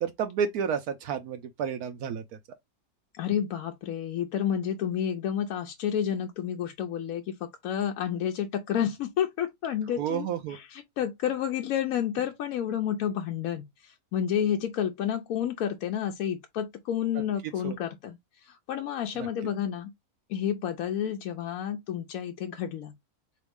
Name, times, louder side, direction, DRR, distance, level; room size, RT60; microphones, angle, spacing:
voice 1, 0.0-2.2 10.0-10.6 17.6-17.7 19.2-19.3, right 7 dB, 80° right, 1.1 m, -30 dB
voice 2, 3.1-19.9 20.3-22.9, left 9 dB, 75° left, 1.0 m, -30 dB
4.0 x 3.1 x 3.4 m
omnidirectional pair, 1.6 m